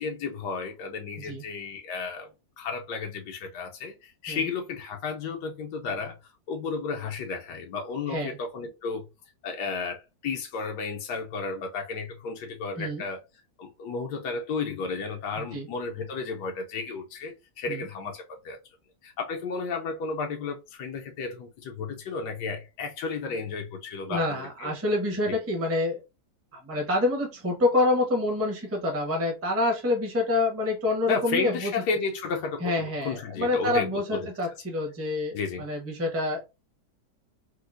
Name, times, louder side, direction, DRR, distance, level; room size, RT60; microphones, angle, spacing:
voice 1, 0.0-2.3 2.6-6.2 6.5-9.0 9.4-13.2 13.6-18.6 19.0-24.7 25.3-25.4 31.1-34.3 35.3-35.6, left 4 dB, 80° left, 1.2 m, -33 dB
voice 2, 24.1-26.0 26.5-31.7 32.6-36.4, left 2 dB, 15° right, 0.6 m, -27 dB
4.4 x 2.0 x 2.5 m
omnidirectional pair, 1.8 m